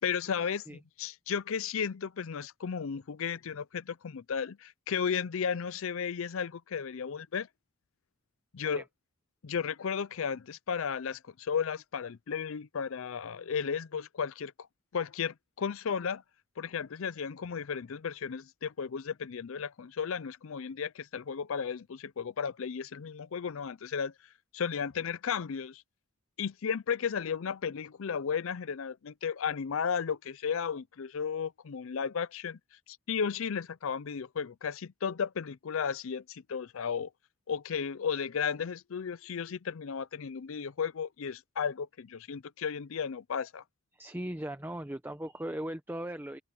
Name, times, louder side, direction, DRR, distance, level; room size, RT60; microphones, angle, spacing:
voice 1, 0.0-7.5 8.5-8.8 9.4-14.7 14.9-16.2 16.6-24.1 24.5-25.8 26.4-32.6 32.9-37.1 37.5-43.6, left 6 dB, 65° left, 0.5 m, -34 dB
voice 2, 43.9-46.4, right 1 dB, 10° right, 0.9 m, -38 dB
open air
head